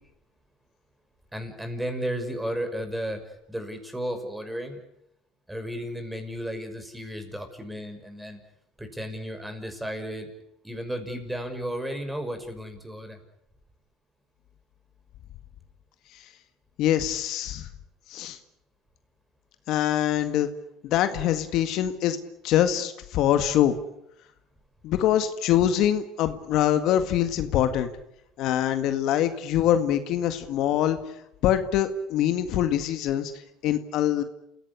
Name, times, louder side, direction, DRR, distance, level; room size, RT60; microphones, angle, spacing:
voice 1, 1.3-4.8 5.5-8.4 8.8-10.3 10.6-13.2, equal, 5° right, 6 dB, 6.0 m, -34 dB
voice 2, 16.8-17.7 18.1-18.4 19.7-20.5 20.8-22.2 22.4-23.8 24.8-27.9 28.4-31.0 31.4-33.3 33.6-34.2, left 11 dB, 60° left, 9 dB, 1.8 m, -24 dB
28.5 x 16.5 x 10.0 m, 0.82 s
supercardioid pair, 95°, 0 cm